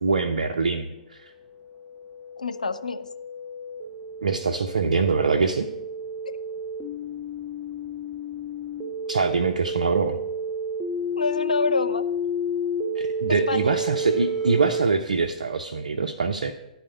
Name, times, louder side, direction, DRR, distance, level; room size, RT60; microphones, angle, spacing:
voice 1, 0.0-1.3 4.2-5.7 9.1-10.2 12.9-16.5, right 4 dB, 75° right, 5 dB, 0.7 m, -24 dB
sound 1, 1.5-14.8, equal, 10° right, 1.1 m, -31 dB
voice 2, 2.4-3.1 6.2-6.3 11.2-12.0 13.3-13.7, left 3 dB, 85° left, 9 dB, 0.7 m, -27 dB
11.0 x 4.2 x 8.0 m, 0.95 s
figure-of-eight pair, 120°, 4 cm